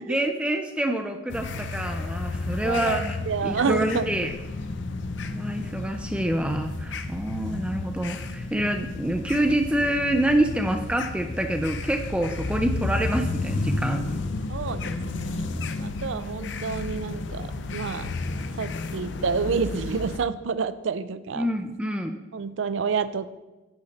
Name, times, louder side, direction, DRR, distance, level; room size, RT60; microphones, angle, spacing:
voice 1, 0.1-3.2 3.4-4.3 5.3-14.0 21.4-22.2, right 1 dB, 5° right, 5 dB, 0.4 m, -26 dB
sound 1, 1.3-20.2, left 3 dB, 60° left, 0.5 m, -32 dB
voice 2, 2.6-3.0 3.3-4.1 14.5-15.4 15.8-18.1 18.6-21.5 22.3-23.3, right 5 dB, 70° right, 14 dB, 0.4 m, -28 dB
10.5 x 4.2 x 5.2 m, 1.1 s
head